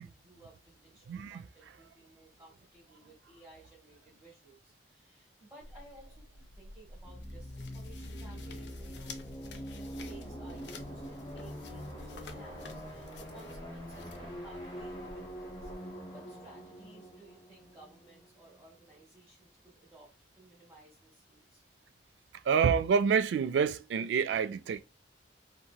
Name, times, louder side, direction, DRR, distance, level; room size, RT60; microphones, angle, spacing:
voice 1, 0.0-9.2 9.5-21.6, right 2 dB, 10° right, 0.9 m, -57 dB
voice 2, 1.1-1.4 22.4-24.8, right 6 dB, 80° right, 0.3 m, -27 dB
sound 1, 5.6-15.7, left 2 dB, 70° left, 0.5 m, -51 dB
sound 2, 7.0-18.6, equal, 25° left, 0.8 m, -44 dB
2.8 x 2.7 x 2.2 m
head